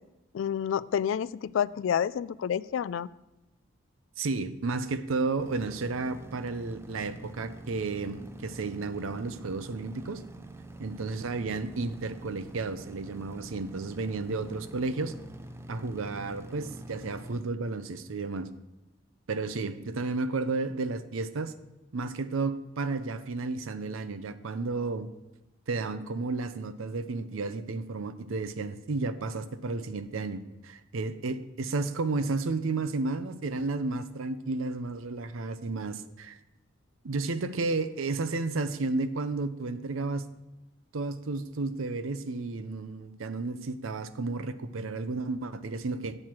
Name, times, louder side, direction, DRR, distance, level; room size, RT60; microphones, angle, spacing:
voice 1, 0.3-3.1, left 8 dB, 70° left, 16 dB, 0.3 m, -29 dB
voice 2, 4.2-10.2 10.8-15.1 15.7-18.5 19.3-21.5 21.9-25.1 25.7-36.4 37.0-40.2 40.9-46.2, right 3 dB, 80° right, 12 dB, 0.6 m, -32 dB
sound 1, 5.4-17.4, right 1 dB, 10° right, 0.4 m, -46 dB
8.7 x 4.6 x 7.4 m, 1.0 s
head